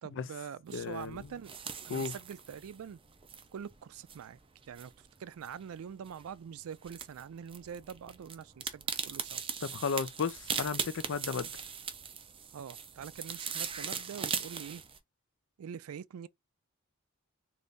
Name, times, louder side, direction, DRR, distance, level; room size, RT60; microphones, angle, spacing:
voice 1, 0.0-1.5 1.8-3.0 3.5-4.4 4.7-9.4 12.5-14.8 15.6-16.3, right 8 dB, 75° right, 0.3 m, -44 dB
voice 2, 0.7-1.3 1.9-2.1 9.6-11.5, left 5 dB, 60° left, 0.5 m, -34 dB
sound 1, 0.7-15.0, right 6 dB, 25° right, 0.5 m, -40 dB
4.0 x 2.6 x 3.4 m
head